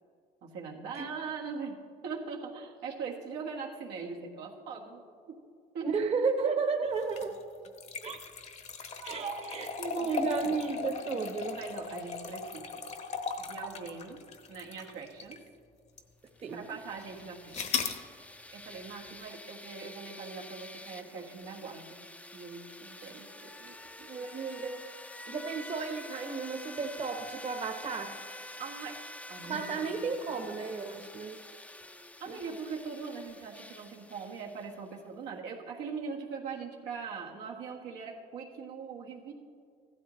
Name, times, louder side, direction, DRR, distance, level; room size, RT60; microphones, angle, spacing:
voice 1, 0.4-5.4 5.7-6.0 9.0-10.5 11.6-12.9 13.4-14.2 14.5-15.4 16.5-17.6 18.5-23.8 24.0-24.1 28.6-29.0 29.3-29.9 32.2-39.3, right 5 dB, 90° right, -1 dB, 1.6 m, -41 dB
voice 2, 5.8-7.4 8.0-8.2 9.0-9.7 9.9-11.6 16.4-16.8 24.1-24.8 25.3-28.2 29.4-31.4 32.3-32.4, right 4 dB, 40° right, 4 dB, 1.1 m, -33 dB
sound 1, 7.0-15.5 16.0-16.1 17.5-18.0, left 5 dB, 40° left, 1.0 m, -37 dB
sound 2, 16.3-34.9, left 1 dB, 10° left, 0.6 m, -48 dB
15.0 x 12.5 x 3.1 m, 2.2 s
cardioid pair, 110°, 17 cm